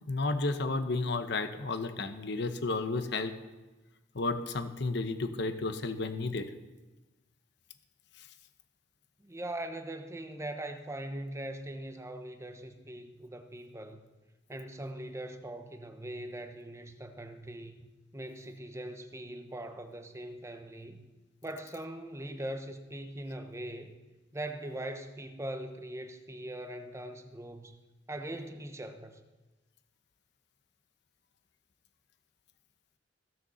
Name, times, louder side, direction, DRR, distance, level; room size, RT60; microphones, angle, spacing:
voice 1, 0.1-3.3 4.1-6.5, left 3 dB, 65° left, 9 dB, 1.0 m, -32 dB
voice 2, 9.2-14.0 14.5-17.9 18.1-21.0 21.4-24.0 24.3-27.8 28.1-29.2, right 1 dB, 15° right, 7 dB, 1.0 m, -41 dB
15.5 x 6.8 x 7.0 m, 1.1 s
head